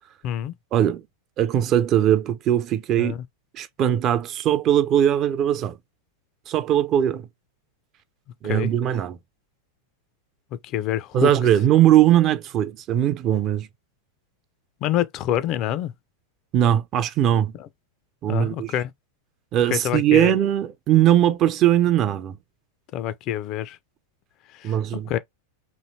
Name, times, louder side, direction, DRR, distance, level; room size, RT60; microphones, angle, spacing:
voice 1, 0.2-0.5 3.0-3.2 8.4-8.7 10.7-11.3 14.8-15.9 17.6-17.7 18.3-18.9 19.7-20.3 22.9-23.8 24.6-24.7 25.1-25.2, left 11 dB, 40° left, 0.3 m, -26 dB
voice 2, 1.4-3.2 3.5-5.8 6.5-7.3 8.4-9.2 11.1-13.7 16.5-17.5 18.2-18.7 19.5-22.4 24.6-25.1, right 11 dB, 35° right, 0.4 m, -20 dB
3.0 x 2.7 x 2.6 m
figure-of-eight pair, 90°, 0 cm